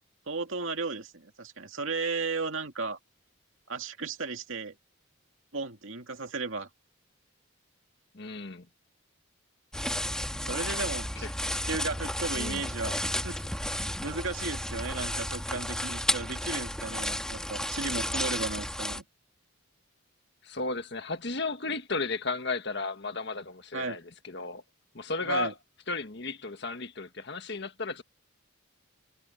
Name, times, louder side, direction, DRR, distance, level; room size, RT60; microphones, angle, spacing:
voice 1, 0.3-3.0 3.7-4.8 5.5-6.7 10.4-11.3 11.6-13.4 14.0-19.0 23.7-24.0 25.2-25.5, right 3 dB, 65° right, 2.4 m, -35 dB
voice 2, 8.1-8.6 11.2-11.3 12.4-12.6 20.4-24.6 24.9-25.5 25.9-28.0, left 3 dB, 50° left, 1.6 m, -34 dB
sound 1, 9.7-19.0, left 1 dB, 5° left, 1.6 m, -32 dB
head